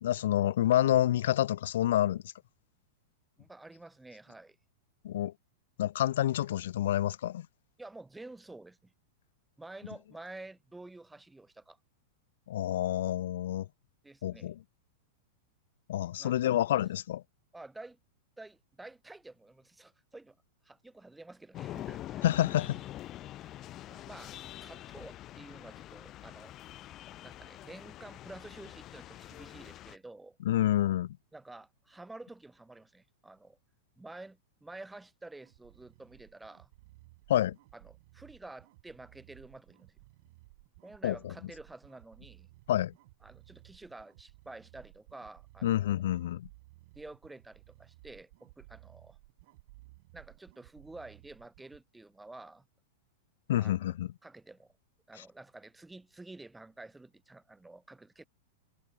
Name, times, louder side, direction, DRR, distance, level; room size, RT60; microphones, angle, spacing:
voice 1, 0.0-2.2 5.0-5.3 5.8-7.5 12.5-13.7 14.2-14.6 15.9-17.2 22.2-22.8 30.5-31.2 37.3-37.6 41.0-41.2 42.7-42.9 45.6-46.5 53.5-54.1, left 12 dB, 75° left, 0.6 m, -28 dB
voice 2, 3.4-4.6 7.8-8.9 9.6-11.8 14.0-14.5 16.2-16.7 17.5-18.0 18.4-20.4 20.6-22.3 23.4-23.5 23.9-24.3 24.6-26.5 27.2-30.4 31.3-33.6 34.0-36.7 37.7-40.0 40.8-42.5 43.2-46.1 46.9-49.2 50.1-52.6 53.6-54.0 54.2-54.7 55.1-58.3, right 2 dB, 5° right, 2.3 m, -50 dB
sound 1, 21.5-30.0, left 13 dB, 30° left, 0.5 m, -45 dB
sound 2, 35.4-51.8, right 21 dB, 55° right, 6.2 m, -58 dB
hypercardioid pair, 135°, 0 cm